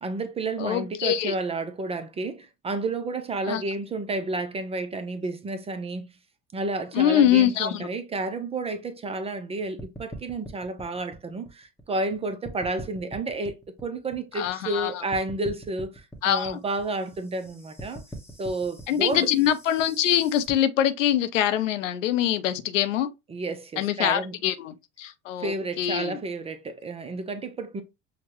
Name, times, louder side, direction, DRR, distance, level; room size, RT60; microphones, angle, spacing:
voice 1, 0.0-6.1 6.5-13.6 13.8-18.0 18.4-19.3 23.3-24.4 25.4-27.8, right 2 dB, 15° right, 0.4 m, -31 dB
voice 2, 0.6-1.3 3.5-3.6 6.9-7.9 14.4-14.9 16.2-16.6 18.9-23.1 23.8-26.2, left 10 dB, 70° left, 0.6 m, -24 dB
sound 1, 9.8-12.1 12.4-14.8 15.1-20.5, right 1 dB, 5° left, 1.0 m, -43 dB
5.8 x 2.1 x 3.0 m
figure-of-eight pair, 70°, 40 cm